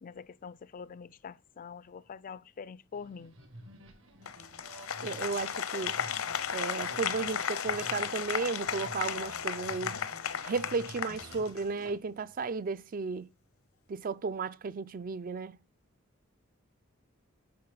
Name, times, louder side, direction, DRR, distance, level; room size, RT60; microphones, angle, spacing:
voice 1, 0.0-3.3, left 6 dB, 40° left, 0.4 m, -45 dB
sound 1, 2.9-11.9, right 1 dB, 70° right, 2.2 m, -51 dB
Applause, 4.3-11.8, left 8 dB, 80° left, 0.7 m, -35 dB
voice 2, 5.0-5.9 6.5-10.0 10.4-13.3 13.9-15.6, right 4 dB, 40° right, 0.4 m, -34 dB
8.6 x 6.0 x 3.9 m
head